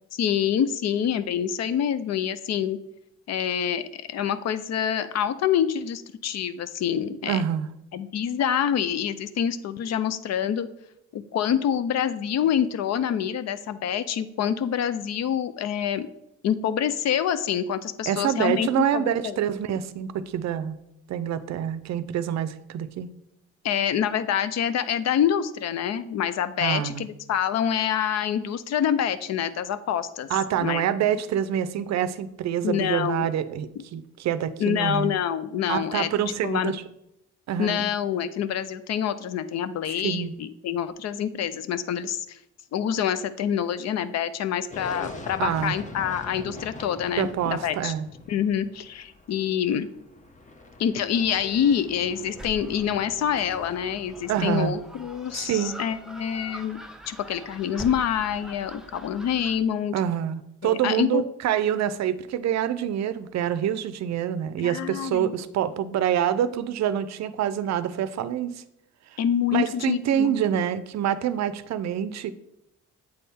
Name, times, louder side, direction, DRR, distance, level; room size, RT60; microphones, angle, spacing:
voice 1, 0.2-2.8 3.3-7.4 7.9-10.7 11.1-16.1 16.4-19.4 23.6-30.3 30.6-30.9 32.6-33.3 34.6-36.7 37.6-42.4 42.7-47.9 48.3-49.9 50.8-56.8 57.1-59.9 60.6-61.3 64.6-65.3 69.2-70.4, left 9 dB, 60° left, 14 dB, 0.5 m, -26 dB
voice 2, 7.3-7.7 18.1-20.8 21.1-23.1 26.6-27.1 30.3-35.1 35.7-36.8 37.5-37.9 40.0-40.3 45.4-45.8 47.2-48.1 54.3-54.8 55.3-55.7 59.9-68.6 69.1-69.2 69.5-72.3, right 9 dB, 60° right, 14 dB, 0.5 m, -26 dB
sound 1, 44.7-55.9, left 2 dB, 25° left, 0.8 m, -44 dB
Gull seagull, 51.1-59.6, right 1 dB, ahead, 0.5 m, -44 dB
7.8 x 3.6 x 4.2 m, 0.83 s
cardioid pair, 90°, 30 cm